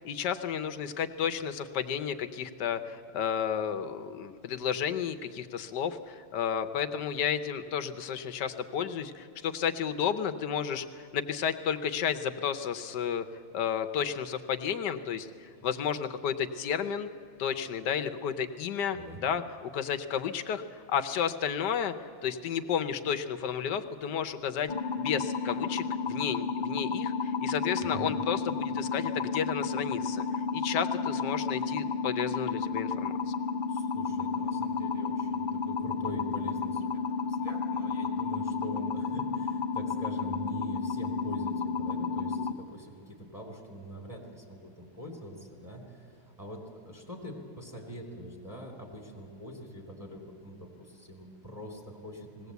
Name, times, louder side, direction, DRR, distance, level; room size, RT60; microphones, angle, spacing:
voice 1, 0.0-13.2 13.5-17.1 17.4-33.3, left 8 dB, 85° left, 9 dB, 1.5 m, -32 dB
sound 1, 24.7-42.5, left 5 dB, 55° left, 0.5 m, -32 dB
voice 2, 33.7-52.5, equal, 10° right, 0 dB, 2.5 m, -44 dB
20.0 x 16.5 x 8.2 m, 2.3 s
omnidirectional pair, 1.8 m